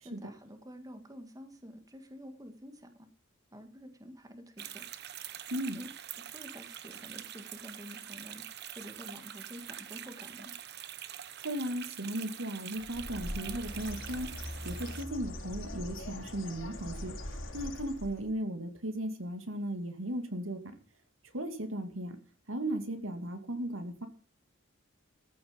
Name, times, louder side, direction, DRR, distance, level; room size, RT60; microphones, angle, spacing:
voice 1, 0.0-3.1 3.5-4.9 5.7-5.9 6.2-8.4 8.8-10.5, equal, 20° right, 7 dB, 1.9 m, -49 dB
sound 1, 4.6-15.0, right 10 dB, 55° right, 1.1 m, -45 dB
voice 2, 5.5-5.8 11.4-20.7 21.3-22.2 22.5-24.1, right 1 dB, 80° right, 7 dB, 2.6 m, -36 dB
Bird, 12.8-18.3, left 1 dB, 70° left, 4.4 m, -41 dB
14.5 x 7.2 x 7.2 m, 0.41 s
head